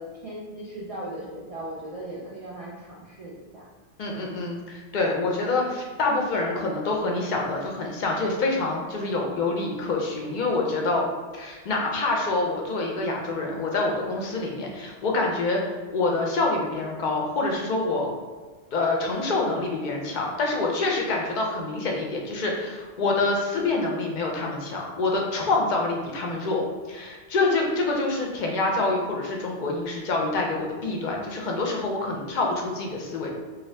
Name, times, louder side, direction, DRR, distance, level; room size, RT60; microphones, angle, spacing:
voice 1, 0.0-3.6, right 1 dB, 60° right, -7 dB, 0.3 m, -38 dB
voice 2, 4.0-11.0 11.3-15.6 15.9-18.1 18.7-33.3, left 3 dB, 60° left, 0 dB, 0.5 m, -26 dB
2.6 x 2.3 x 3.2 m, 1.4 s
omnidirectional pair, 1.2 m